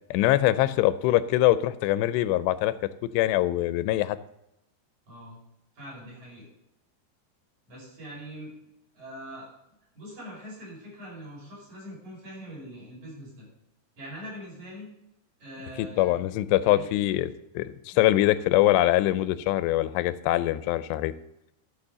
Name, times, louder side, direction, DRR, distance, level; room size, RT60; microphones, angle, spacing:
voice 1, 0.1-2.7 3.1-4.2 15.8-17.3 17.6-21.1, left 15 dB, 90° left, 15 dB, 2.7 m, -23 dB
voice 2, 5.1-5.4 5.7-6.5 7.7-9.5 9.9-13.5 14.0-14.9 15.4-16.2 16.6-17.1 17.9-18.0, equal, 45° right, -6 dB, 6.7 m, -43 dB
12.5 x 6.0 x 6.7 m, 0.86 s
omnidirectional pair, 4.8 m